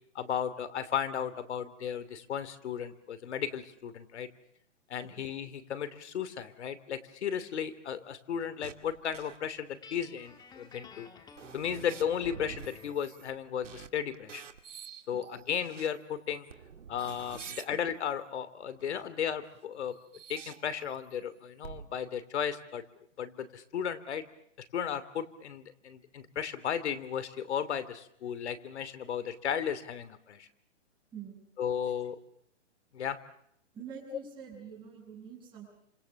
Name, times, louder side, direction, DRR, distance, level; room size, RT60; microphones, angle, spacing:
voice 1, 0.1-4.3 4.9-11.1 11.5-14.4 15.1-16.5 16.9-20.0 20.3-22.8 23.2-24.2 24.6-30.5 31.6-32.2 32.9-33.2 34.1-34.2, left 8 dB, 65° left, 14 dB, 2.9 m, -35 dB
sound 1, 8.6-9.5 10.7-10.8 11.3-13.4 13.6-13.9 14.1-15.9 16.4-17.7 18.8-19.2 19.9-21.2 21.6-21.8, right 7 dB, 90° right, 2.4 m, -48 dB
Guitar, 9.8-13.1, left 5 dB, 10° left, 1.8 m, -52 dB
voice 2, 31.1-31.5 31.8-31.9 33.7-35.7, right 7 dB, 15° right, -5 dB, 7.9 m, -46 dB
29.0 x 27.0 x 7.1 m, 0.71 s
hypercardioid pair, 150°, 36 cm